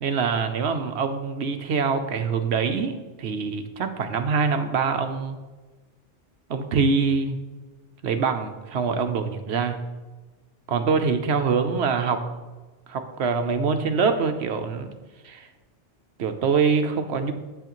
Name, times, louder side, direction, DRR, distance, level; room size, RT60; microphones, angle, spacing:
voice 1, 0.0-5.4 6.5-7.4 8.0-9.8 10.7-12.2 12.9-14.9 15.2-15.5 16.2-17.3, right 5 dB, 70° right, 7 dB, 1.0 m, -24 dB
9.0 x 7.9 x 3.0 m, 1.2 s
omnidirectional pair, 1.2 m